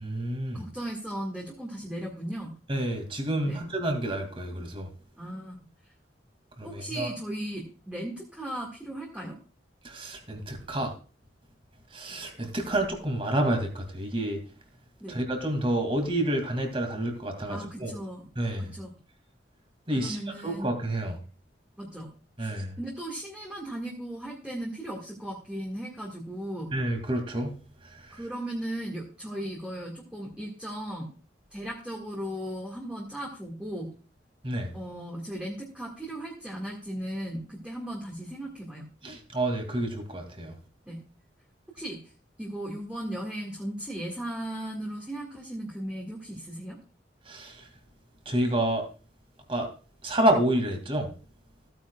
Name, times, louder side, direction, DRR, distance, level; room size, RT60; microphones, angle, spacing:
voice 1, 0.0-0.7 2.7-4.9 6.6-7.1 9.8-10.9 11.9-14.4 15.1-17.9 18.4-18.7 19.9-20.2 20.4-21.2 22.4-22.7 26.7-27.6 34.4-34.7 39.0-40.5 47.3-47.6 48.3-48.8 49.5-49.7 50.0-51.1, right 1 dB, 30° right, 5 dB, 2.5 m, -29 dB
voice 2, 0.5-2.5 3.4-3.7 5.2-5.6 6.6-9.4 15.0-15.2 17.5-18.3 18.6-18.9 19.9-20.7 21.8-22.1 22.4-26.7 28.1-31.1 31.5-33.9 34.7-38.9 40.9-41.0 41.7-42.0 42.4-46.8, right 1 dB, 5° right, -3 dB, 1.9 m, -36 dB
15.5 x 9.1 x 2.4 m, 0.35 s
head